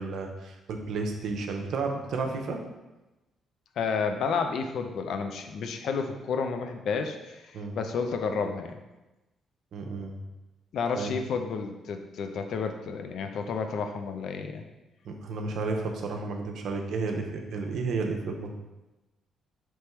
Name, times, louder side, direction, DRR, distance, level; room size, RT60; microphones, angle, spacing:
voice 1, 0.0-2.6 7.5-7.7 9.7-10.2 10.9-11.1 15.0-18.5, right 4 dB, 70° right, 3 dB, 0.6 m, -32 dB
voice 2, 3.8-8.8 10.7-14.6, left 5 dB, 70° left, 6 dB, 0.4 m, -31 dB
3.4 x 3.0 x 4.4 m, 1.0 s
cardioid pair, 90°, 0 cm